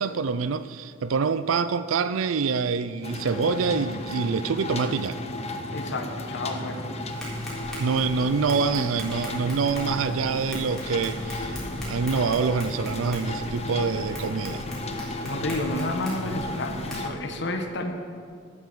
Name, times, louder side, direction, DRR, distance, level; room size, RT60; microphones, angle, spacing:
voice 1, 0.0-5.2 7.8-11.6 11.9-14.7, right 5 dB, 80° right, 13 dB, 0.5 m, -26 dB
sound 1, 3.0-17.1, left 1 dB, 30° left, 0.9 m, -34 dB
voice 2, 5.7-6.8 15.2-17.9, left 2 dB, 60° left, 5 dB, 1.2 m, -30 dB
Tap, 7.1-17.0, equal, ahead, 3.8 m, -40 dB
11.5 x 8.6 x 7.8 m, 2.1 s
head